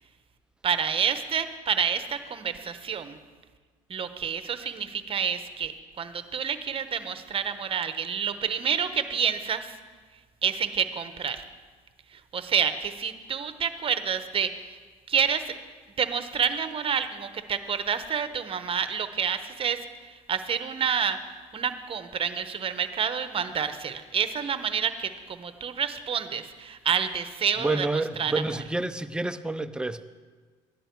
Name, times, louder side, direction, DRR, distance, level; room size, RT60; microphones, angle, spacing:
voice 1, 0.6-3.2 3.9-9.8 10.4-11.4 12.1-14.8 15.1-15.5 16.0-27.9 28.2-28.3, right 7 dB, 35° right, 10 dB, 0.9 m, -28 dB
voice 2, 27.6-30.0, right 2 dB, 5° right, 10 dB, 0.5 m, -29 dB
12.5 x 10.0 x 4.6 m, 1.5 s
supercardioid pair, 80°, 16 cm